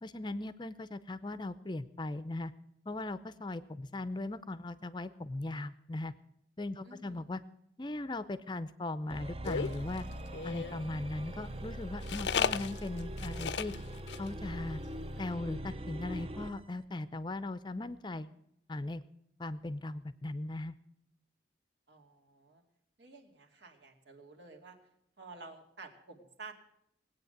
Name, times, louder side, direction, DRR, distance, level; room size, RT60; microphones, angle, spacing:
voice 1, 0.0-2.5 2.9-6.1 6.6-7.4 7.8-10.0 10.4-13.7 14.2-14.8 15.2-18.3 18.7-19.0 19.4-20.7, left 2 dB, 25° left, 14 dB, 0.6 m, -38 dB
voice 2, 6.8-7.2 21.9-22.6 23.0-24.8 25.2-26.5, right 3 dB, 75° right, 2 dB, 2.6 m, -51 dB
sound 1, 9.1-16.6, equal, 30° right, 0.7 m, -42 dB
sound 2, 9.4-10.8 12.0-13.8 14.1-14.3 14.5-14.6 14.9-15.3, left 6 dB, 75° left, 0.5 m, -35 dB
19.0 x 8.9 x 7.9 m, 0.76 s
head